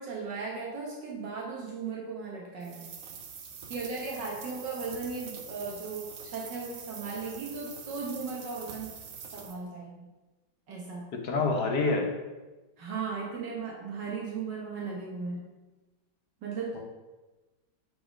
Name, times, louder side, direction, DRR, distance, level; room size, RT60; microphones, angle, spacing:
voice 1, 0.0-2.9 3.7-9.0 9.3-10.1 10.7-11.1 12.8-15.5 16.4-16.8, right 4 dB, 75° right, -3 dB, 1.8 m, -37 dB
sound 1, 2.6-9.6, right 6 dB, 60° right, 1.1 m, -44 dB
voice 2, 11.1-12.1 16.7-16.8, left 3 dB, 65° left, 1 dB, 1.7 m, -27 dB
9.4 x 4.1 x 5.1 m, 1.2 s
omnidirectional pair, 1.9 m